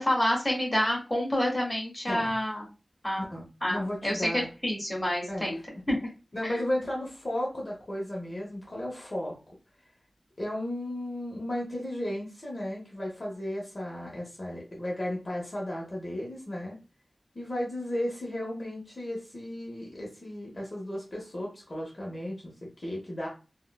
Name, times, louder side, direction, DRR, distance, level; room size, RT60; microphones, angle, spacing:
voice 1, 0.0-2.7 3.0-3.3 3.6-5.6 5.9-6.0, left 1 dB, 20° left, -3 dB, 1.5 m, -28 dB
voice 2, 2.1-2.4 3.3-4.5 5.3-5.6 6.3-9.4 10.4-16.8 17.3-23.3, left 1 dB, 55° left, -3 dB, 0.9 m, -34 dB
3.6 x 2.1 x 2.3 m, 0.33 s
wide cardioid pair, 50°, 0 cm